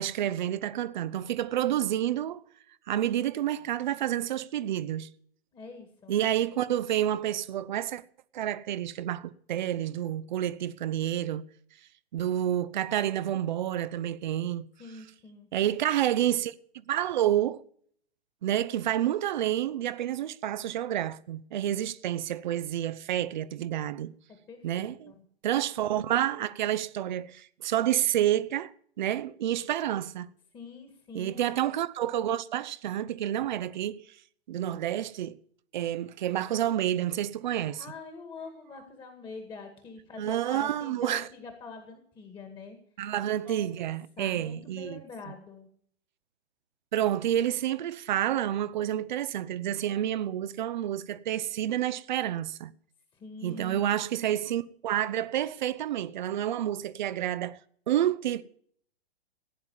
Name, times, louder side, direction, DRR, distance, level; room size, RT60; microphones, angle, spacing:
voice 1, 0.0-2.4 2.9-5.1 6.1-8.0 8.3-11.5 12.1-14.7 15.5-16.5 16.9-17.6 18.4-24.1 24.6-25.1 25.4-28.7 29.0-30.3 31.1-34.0 34.5-35.4 35.7-37.8 40.2-41.3 43.0-45.0 46.9-52.7 53.4-57.6 57.9-58.4, right 11 dB, 45° right, 0.8 m, -29 dB
voice 2, 5.5-6.2 14.8-15.5 24.5-25.3 30.5-31.5 37.8-42.8 43.4-43.9 44.2-45.7 53.1-54.0, left 4 dB, 15° left, 2.0 m, -45 dB
16.5 x 9.6 x 7.1 m
figure-of-eight pair, 120°, 33 cm